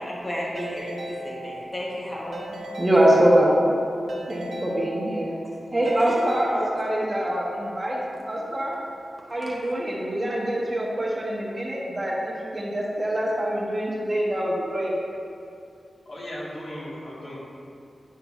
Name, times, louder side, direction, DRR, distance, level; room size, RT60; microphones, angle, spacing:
voice 1, 0.0-2.9 5.8-6.2 6.6-6.7 9.4-9.5, equal, 20° left, -5 dB, 0.9 m, -34 dB
Keyboard (musical) / Ringtone, 0.6-1.9 2.3-3.6 4.1-5.4 5.9-7.2, right 1 dB, 90° right, 0.8 m, -38 dB
voice 2, 2.8-3.8 4.3-5.4 5.7-8.8 9.3-14.9, right 1 dB, 20° right, -3 dB, 0.8 m, -24 dB
voice 3, 16.0-17.4, equal, 55° left, -6 dB, 1.4 m, -36 dB
9.0 x 5.7 x 2.4 m, 2.5 s
wide cardioid pair, 150°, 0 cm